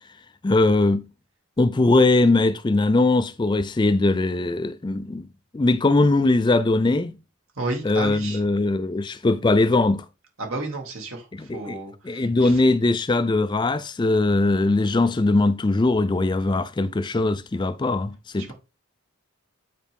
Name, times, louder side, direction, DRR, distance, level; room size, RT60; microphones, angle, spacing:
voice 1, 0.4-1.1 1.6-5.3 5.5-7.1 7.8-10.1 11.3-11.8 12.0-18.5, left 2 dB, 20° left, 0.3 m, -20 dB
voice 2, 7.6-8.4 10.4-12.5 18.4-18.5, right 2 dB, 70° right, 2.5 m, -32 dB
9.2 x 4.7 x 3.6 m
head